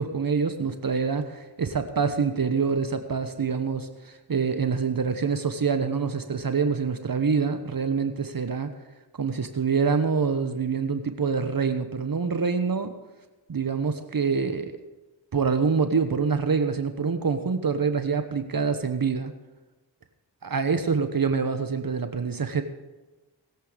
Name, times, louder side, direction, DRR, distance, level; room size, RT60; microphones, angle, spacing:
voice 1, 0.0-8.7 9.2-12.9 13.5-14.7 15.3-19.3 20.4-22.6, right 5 dB, 50° right, 8 dB, 1.2 m, -26 dB
20.5 x 8.1 x 5.2 m, 1.1 s
cardioid pair, 40°, 43 cm